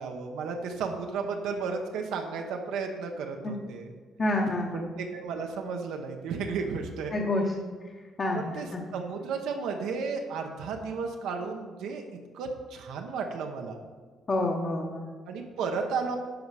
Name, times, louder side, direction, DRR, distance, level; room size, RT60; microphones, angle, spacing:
voice 1, 0.0-3.9 4.7-7.2 8.3-12.0 12.3-13.8 15.3-16.2, right 5 dB, 80° right, 3 dB, 1.0 m, -33 dB
voice 2, 4.2-4.9 7.1-7.4 8.2-8.8 14.3-15.1, left 2 dB, 25° left, -1 dB, 0.8 m, -28 dB
11.0 x 5.5 x 4.8 m, 1.5 s
cardioid pair, 175°, 0 cm